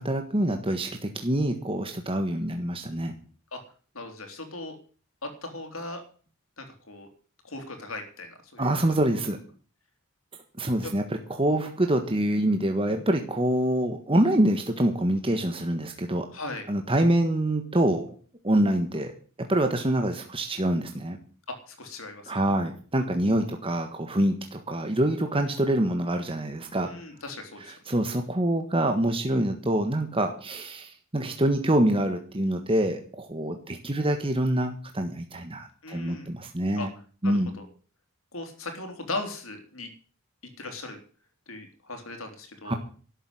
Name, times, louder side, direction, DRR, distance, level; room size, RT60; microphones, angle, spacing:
voice 1, 0.0-3.1 8.6-9.4 10.6-11.0 11.4-16.3 16.7-18.1 18.4-19.1 19.4-21.2 22.3-26.9 27.7-36.9 37.2-37.5 42.6-42.7, right 1 dB, 25° right, 5 dB, 1.5 m, -25 dB
voice 2, 3.9-4.8 5.2-6.0 6.6-7.1 7.4-8.8 10.8-10.9 11.5-11.7 16.3-16.7 21.5-22.3 26.8-27.7 35.8-36.3 36.8-36.9 37.2-37.7 38.3-39.9 40.6-41.0 41.5-42.8, left 2 dB, 70° left, 6 dB, 3.6 m, -38 dB
12.5 x 7.7 x 9.9 m, 0.42 s
head